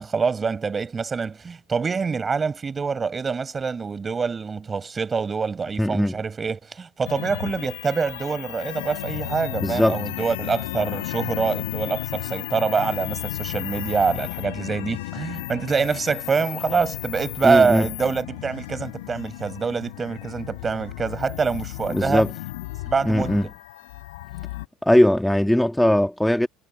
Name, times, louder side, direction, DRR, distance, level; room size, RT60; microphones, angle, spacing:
voice 1, 0.0-22.2 22.9-23.5, right 5 dB, 30° right, 5.2 m, -25 dB
voice 2, 5.8-6.2 9.6-10.0 17.4-17.9 21.9-22.3 23.0-23.5 24.8-26.5, left 1 dB, 5° left, 2.0 m, -19 dB
sound 1, 7.1-24.7, left 19 dB, 80° left, 4.7 m, -33 dB
hypercardioid pair, 75°, 0 cm